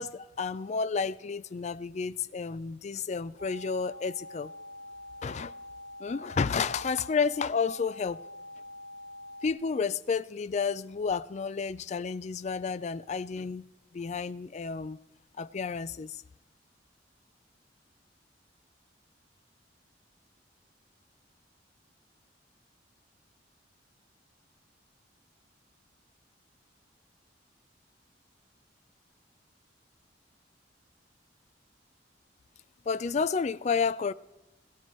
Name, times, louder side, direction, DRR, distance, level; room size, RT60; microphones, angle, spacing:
voice 1, 0.0-4.5 5.2-5.5 6.0-8.2 9.4-13.7 13.9-15.0 15.4-16.2 32.9-34.1, left 5 dB, 40° left, 0.3 m, -31 dB
sound 1, 3.4-9.5, left 1 dB, 65° left, 0.9 m, -45 dB
18.0 x 16.5 x 3.1 m
head